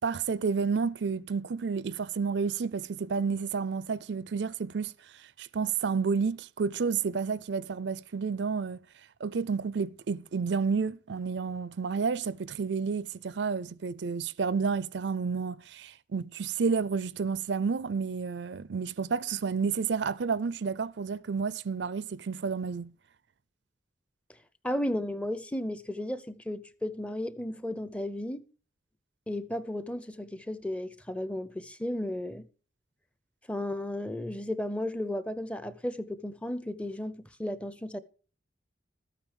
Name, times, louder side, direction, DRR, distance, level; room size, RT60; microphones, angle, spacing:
voice 1, 0.0-4.9 5.4-8.8 9.2-22.9, right 5 dB, 70° right, 0.5 m, -30 dB
voice 2, 24.6-28.4 29.3-32.5 33.5-38.0, left 1 dB, 5° left, 0.6 m, -34 dB
13.0 x 9.1 x 4.8 m
head